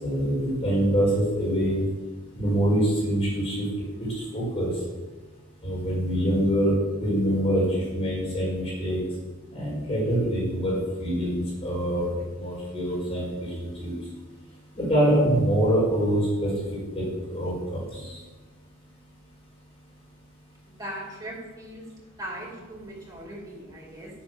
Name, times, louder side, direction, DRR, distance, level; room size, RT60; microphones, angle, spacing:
voice 1, 0.0-1.8 2.4-3.6 4.3-4.7 5.6-6.7 7.0-9.0 9.5-12.1 12.4-13.9 14.8-16.5 16.9-18.2, equal, 30° left, -6 dB, 4.7 m, -25 dB
voice 2, 20.7-21.8 22.2-24.1, right 1 dB, 20° right, -4 dB, 4.4 m, -39 dB
10.0 x 8.9 x 6.3 m, 1.3 s
head